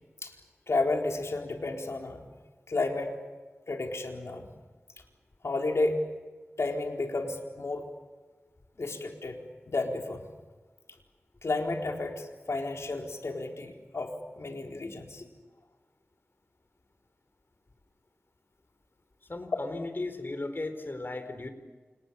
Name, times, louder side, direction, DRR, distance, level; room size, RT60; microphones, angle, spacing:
voice 1, 0.7-2.2 2.7-3.1 3.7-4.5 5.4-6.0 6.6-7.9 8.8-9.4 9.7-10.3 11.4-15.2, left 2 dB, 75° left, 3 dB, 4.3 m, -32 dB
voice 2, 19.3-21.5, left 2 dB, 45° left, 9 dB, 4.4 m, -36 dB
29.5 x 28.0 x 7.1 m, 1.3 s
wide cardioid pair, 55°, 5 cm